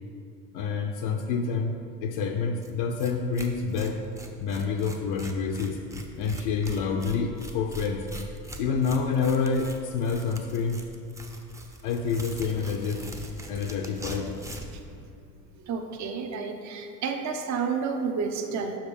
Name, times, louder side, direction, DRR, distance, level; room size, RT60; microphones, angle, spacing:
voice 1, 0.5-4.0 4.4-5.8 6.2-8.1 8.6-10.8 11.8-13.1 13.5-14.3, left 5 dB, 50° left, 3 dB, 0.6 m, -28 dB
Tearing, 2.6-2.7 3.0-3.1 3.4-14.8, right 1 dB, 5° right, 0.6 m, -41 dB
voice 2, 15.6-18.8, right 5 dB, 35° right, 4 dB, 0.8 m, -30 dB
5.9 x 5.1 x 5.3 m, 2.5 s
hypercardioid pair, 80°, 49 cm